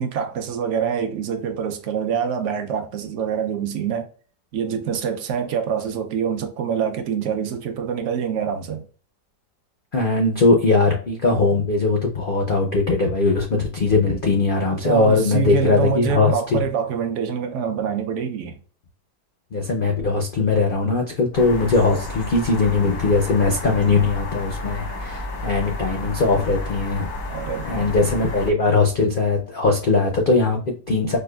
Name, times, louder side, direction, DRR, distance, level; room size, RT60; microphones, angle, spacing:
voice 1, 0.0-4.1 4.5-8.8 14.8-18.6 27.3-28.0, right 8 dB, 70° right, 0.7 m, -25 dB
voice 2, 9.9-16.6 19.5-27.1 27.6-31.2, left 3 dB, 70° left, 0.5 m, -20 dB
sound 1, 21.3-28.5, left 2 dB, 90° left, 1.8 m, -31 dB
5.1 x 2.2 x 2.2 m
omnidirectional pair, 1.8 m